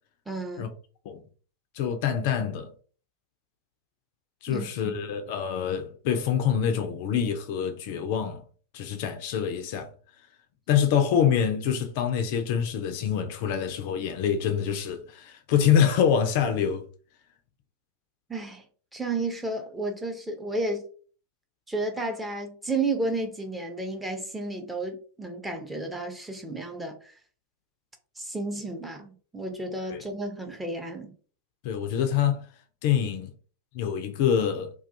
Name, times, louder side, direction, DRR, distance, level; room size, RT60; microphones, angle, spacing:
voice 1, 0.3-0.7 4.5-5.0 18.3-18.6 18.9-20.8 21.7-27.1 28.2-31.1, right 2 dB, 5° right, 0.5 m, -32 dB
voice 2, 1.7-2.7 4.4-8.4 8.7-9.9 10.7-16.9 29.9-30.0 31.6-32.5 32.8-33.3 33.7-34.7, left 8 dB, 50° left, 0.3 m, -25 dB
2.2 x 2.2 x 2.6 m
figure-of-eight pair, 90°, 0 cm